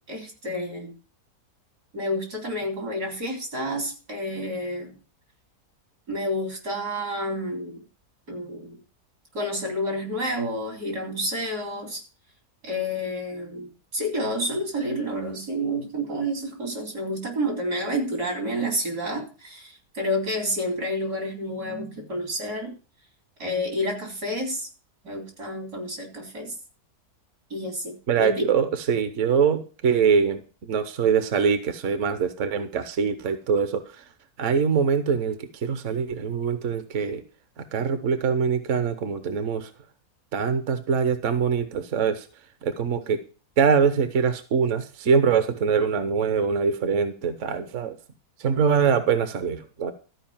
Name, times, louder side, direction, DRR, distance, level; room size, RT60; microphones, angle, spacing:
voice 1, 0.1-0.9 1.9-5.0 6.1-7.8 8.3-8.8 9.3-12.0 12.6-22.8 23.4-24.7 25.0-26.5 27.5-28.5, equal, 80° right, 2 dB, 4.3 m, -29 dB
voice 2, 28.1-34.1 34.4-37.2 37.6-39.7 40.3-42.3 42.6-43.2 43.6-48.0 48.4-49.9, right 6 dB, 55° right, 9 dB, 1.2 m, -23 dB
13.5 x 5.1 x 7.2 m, 0.36 s
omnidirectional pair, 1.7 m